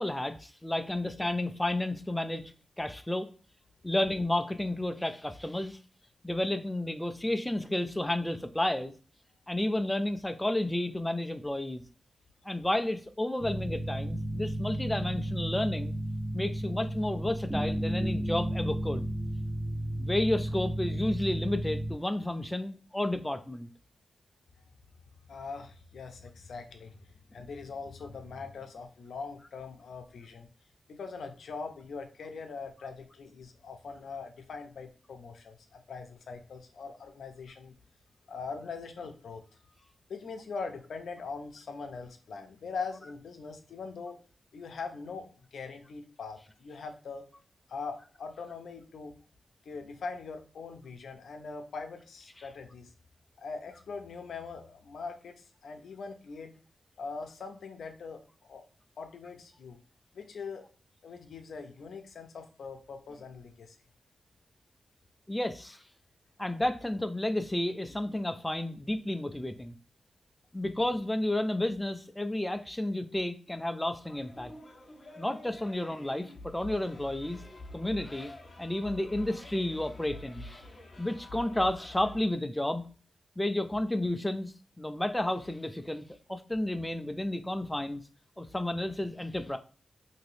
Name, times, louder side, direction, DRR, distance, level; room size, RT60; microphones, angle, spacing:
voice 1, 0.0-2.5 2.8-3.3 3.8-5.8 6.2-9.0 9.5-11.8 12.4-16.0 16.3-19.1 20.0-23.7 65.3-65.8 66.4-69.7 70.5-74.5 75.2-77.4 77.7-80.6 81.0-82.8 83.4-88.0 88.4-89.6, left 1 dB, 10° left, 8 dB, 0.3 m, -31 dB
sound 1, 13.4-21.9, right 1 dB, 30° right, 0.7 m, -33 dB
voice 2, 25.3-30.5 30.9-37.7 38.3-39.4 40.1-44.2 44.5-47.3 47.7-49.2 49.6-52.9 53.4-56.6 57.0-58.6 59.0-59.8 60.1-60.7 61.0-63.8, left 4 dB, 85° left, 5 dB, 0.5 m, -42 dB
sound 2, 74.0-82.2, left 1 dB, 45° left, 0.7 m, -47 dB
2.9 x 2.6 x 3.2 m, 0.39 s
cardioid pair, 75°, 0 cm